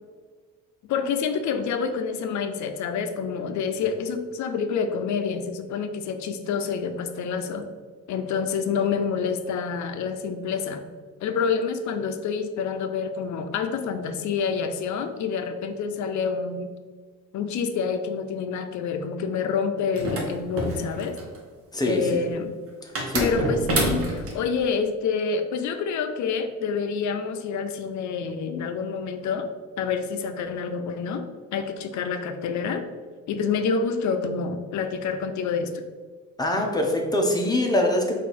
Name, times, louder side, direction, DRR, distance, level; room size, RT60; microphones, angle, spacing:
voice 1, 0.9-7.7 8.1-10.8 11.2-16.7 17.3-21.2 21.8-22.5 23.2-29.5 29.8-31.2 31.5-32.9 33.3-35.8, left 5 dB, 70° left, 8 dB, 0.5 m, -27 dB
sound 1, 19.9-21.4 23.0-24.4, right 1 dB, 50° right, 1.1 m, -27 dB
voice 2, 21.7-22.2 22.8-23.5 36.4-38.2, left 1 dB, 15° left, 1 dB, 0.8 m, -24 dB
4.3 x 2.6 x 4.1 m, 1.5 s
cardioid pair, 90°, 30 cm